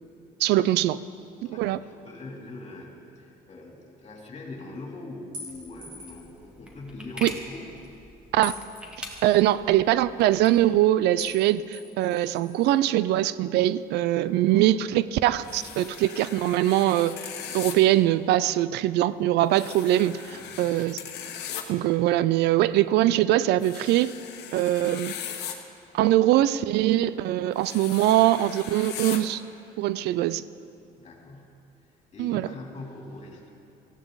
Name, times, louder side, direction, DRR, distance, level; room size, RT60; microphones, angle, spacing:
voice 1, 0.4-1.0 1.5-1.8 7.2-7.3 8.3-8.6 9.2-17.2 17.5-20.2 20.6-21.0 21.7-24.1 24.5-25.1 25.9-29.4 29.8-30.4 32.2-32.5, right 14 dB, 80° right, 17 dB, 0.4 m, -22 dB
voice 2, 1.4-7.7 14.2-14.7 20.3-20.8 31.0-33.5, left 2 dB, 40° left, 0 dB, 3.0 m, -43 dB
sound 1, 5.3-6.3 8.4-9.4 11.2-11.4 11.7-12.7, left 1 dB, 55° right, 4.3 m, -42 dB
sound 2, 5.5-10.7, equal, 5° right, 1.9 m, -44 dB
sound 3, 15.4-17.7 19.5-21.6 23.6-25.5 27.5-29.2, left 9 dB, 80° left, 1.2 m, -39 dB
18.0 x 15.0 x 4.0 m, 2.6 s
cardioid pair, 110°, 17 cm